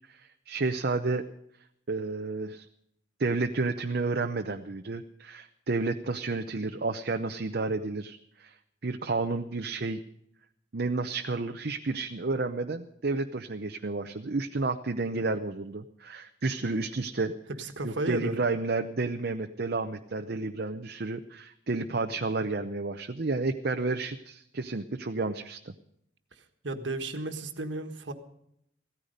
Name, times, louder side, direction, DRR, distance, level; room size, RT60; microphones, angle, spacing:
voice 1, 0.1-1.2 1.9-2.7 3.2-8.5 8.8-10.0 10.7-17.3 17.8-25.7, right 3 dB, 55° right, 5 dB, 0.7 m, -31 dB
voice 2, 17.6-18.4 26.3-28.1, right 2 dB, 70° right, 7 dB, 1.5 m, -34 dB
16.0 x 14.0 x 5.2 m, 0.75 s
head